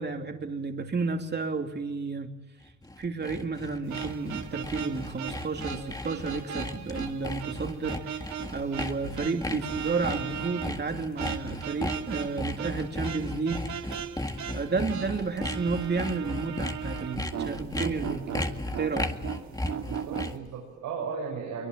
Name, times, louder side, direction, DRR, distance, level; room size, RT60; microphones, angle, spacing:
voice 1, 0.0-2.3 3.0-8.2 8.5-13.7 14.5-18.3 18.7-19.2, right 4 dB, 35° right, 2.9 m, -31 dB
Sawing, 2.7-20.5, left 1 dB, 10° left, 2.0 m, -36 dB
sound 1, 3.9-20.4, right 8 dB, 70° right, 2.3 m, -38 dB
voice 2, 19.9-21.7, right 5 dB, 85° right, 6.6 m, -36 dB
24.0 x 22.5 x 7.7 m
cardioid pair, 90°, 30 cm